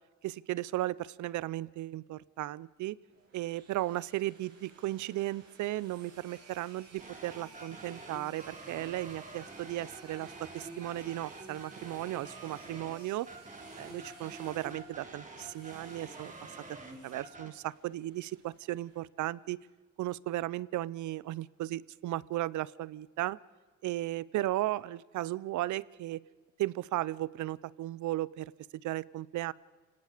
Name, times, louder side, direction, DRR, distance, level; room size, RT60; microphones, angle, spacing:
voice 1, 0.2-3.0 3.3-13.3 13.8-16.3 17.0-19.6 20.0-23.4 23.8-26.2 26.6-29.5, right 15 dB, 75° right, 22 dB, 0.6 m, -35 dB
sound 1, 3.1-19.0, right 4 dB, 55° right, 7.1 m, -57 dB
sound 2, 7.0-17.5, right 2 dB, 25° right, 2.9 m, -48 dB
30.0 x 18.0 x 5.0 m, 1.4 s
cardioid pair, 90°, 30 cm